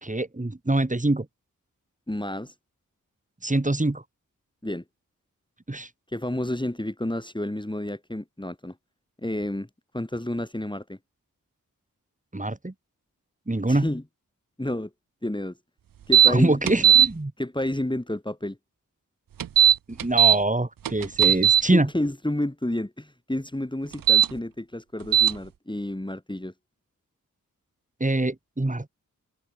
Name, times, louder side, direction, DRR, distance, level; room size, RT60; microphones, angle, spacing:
voice 1, 0.0-1.3 3.4-4.0 5.7-5.9 12.3-12.7 13.5-13.9 16.3-17.3 19.9-21.9 28.0-28.9, right 2 dB, 20° right, 4.8 m, -24 dB
voice 2, 2.1-2.5 4.6-4.8 6.1-8.8 9.2-9.7 9.9-11.0 13.7-14.0 14.6-14.9 15.2-15.5 16.1-16.9 17.4-18.6 21.2-21.4 21.7-26.5, left 1 dB, 15° left, 7.3 m, -30 dB
sound 1, 16.1-16.3 16.7-17.1 19.4-20.4 20.9-21.6 23.9-24.3 25.1-25.3, right 9 dB, 75° right, 0.8 m, -16 dB
cardioid pair, 50°, 34 cm